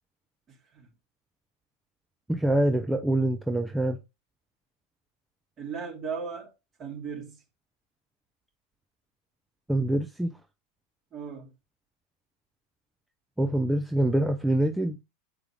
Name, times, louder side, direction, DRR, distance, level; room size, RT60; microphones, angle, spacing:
voice 1, 0.5-0.9 5.6-6.5 6.8-7.4 11.1-11.5, right 6 dB, 35° right, 3.4 m, -37 dB
voice 2, 2.3-4.0 9.7-10.3 13.4-15.0, right 1 dB, 5° right, 0.6 m, -25 dB
8.0 x 4.9 x 3.5 m
figure-of-eight pair, 85°, 0 cm